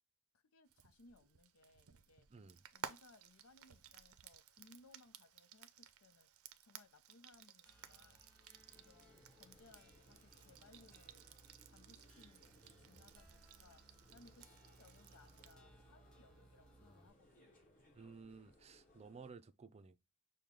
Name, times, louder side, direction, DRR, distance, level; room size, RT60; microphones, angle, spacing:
voice 1, 0.3-2.3 2.7-6.3 6.6-8.2 8.7-11.3 11.7-12.5 12.8-17.6, left 3 dB, 75° left, 0.7 m, -66 dB
Frying (food), 0.7-15.6, right 8 dB, 75° right, 0.5 m, -57 dB
sound 1, 7.7-17.1, right 2 dB, 5° left, 1.3 m, -66 dB
sound 2, 8.3-19.3, left 1 dB, 40° left, 2.3 m, -68 dB
voice 2, 17.9-20.0, right 4 dB, 30° right, 0.5 m, -55 dB
6.5 x 2.2 x 3.7 m
head